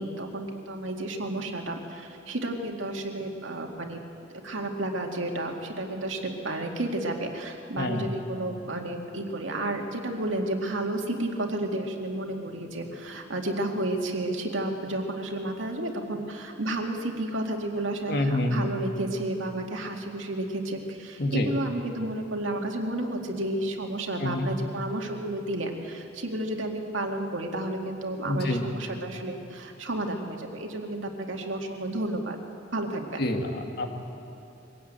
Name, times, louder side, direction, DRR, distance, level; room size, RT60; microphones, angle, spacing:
voice 1, 0.0-4.0 4.3-32.4 32.7-33.2, right 1 dB, 90° right, 2 dB, 2.2 m, -32 dB
voice 2, 7.8-8.1 18.1-18.7 21.2-21.5 24.2-24.5 28.2-28.6 33.2-33.9, left 1 dB, 55° left, 3 dB, 2.1 m, -27 dB
22.5 x 16.5 x 9.0 m, 2.8 s
head